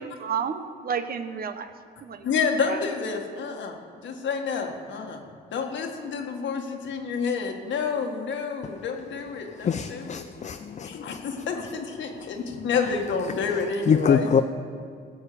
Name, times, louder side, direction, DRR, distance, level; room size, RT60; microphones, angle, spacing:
voice 1, 0.0-1.7 2.0-2.3 2.7-2.8, right 7 dB, 50° right, 9 dB, 0.9 m, -31 dB
voice 2, 2.2-3.7 4.0-5.2 5.5-10.2 10.8-14.3, left 5 dB, 70° left, 3 dB, 1.8 m, -29 dB
voice 3, 9.6-11.2 13.3-14.4, left 6 dB, 35° left, 9 dB, 0.5 m, -25 dB
17.0 x 7.2 x 6.9 m, 2.2 s
cardioid pair, 90°, 20 cm